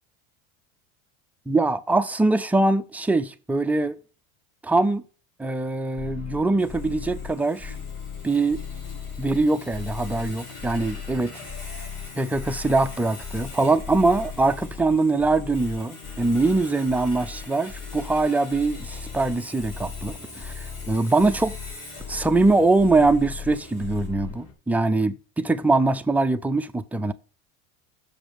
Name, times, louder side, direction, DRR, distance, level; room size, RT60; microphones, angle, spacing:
voice 1, 1.5-4.0 4.6-5.0 5.4-7.8 8.2-8.6 9.2-11.3 12.2-21.6 22.1-27.1, right 3 dB, 5° right, 0.3 m, -23 dB
sound 1, 6.0-24.5, left 6 dB, 40° left, 2.5 m, -38 dB
Sawing, 6.6-24.1, left 2 dB, 90° left, 4.7 m, -44 dB
7.2 x 5.1 x 5.6 m
supercardioid pair, 105°, 41 cm